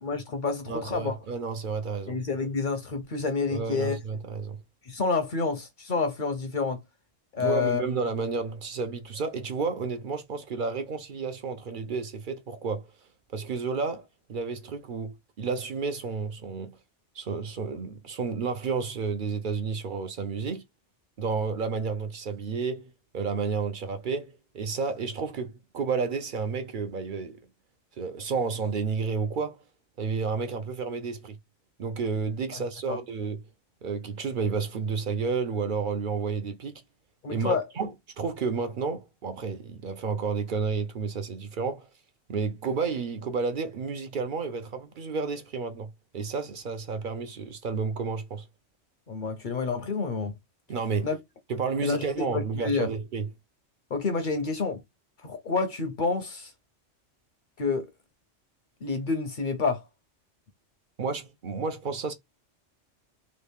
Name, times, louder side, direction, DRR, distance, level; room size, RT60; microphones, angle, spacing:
voice 1, 0.0-1.1 2.1-4.0 4.9-6.8 7.3-7.8 32.5-32.6 32.9-33.0 37.2-37.6 49.1-50.3 51.0-51.2 51.8-52.9 53.9-54.8 55.2-56.5 57.6-57.9 58.8-59.8, left 4 dB, 50° left, 0.6 m, -28 dB
voice 2, 0.7-2.2 3.5-4.6 7.4-12.9 13.3-16.8 17.2-20.6 21.2-27.4 28.0-29.6 30.0-31.4 31.8-33.4 33.8-36.8 37.3-41.9 42.3-48.5 50.7-51.1 51.5-53.3 61.0-62.1, right 5 dB, 55° right, 0.6 m, -31 dB
3.1 x 2.3 x 3.4 m
omnidirectional pair, 1.2 m